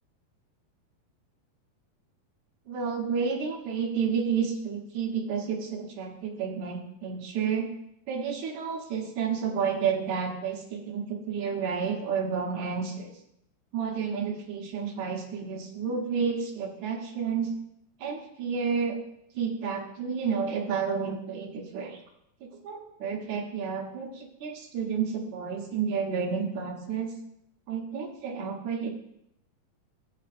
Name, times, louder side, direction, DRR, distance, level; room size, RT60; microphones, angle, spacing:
voice 1, 2.7-7.7 8.1-13.1 13.7-17.5 18.0-19.0 19.3-22.0 22.4-27.1 27.7-28.9, right 6 dB, 65° right, 0 dB, 2.3 m, -30 dB
13.5 x 8.2 x 2.5 m, 0.76 s
omnidirectional pair, 4.1 m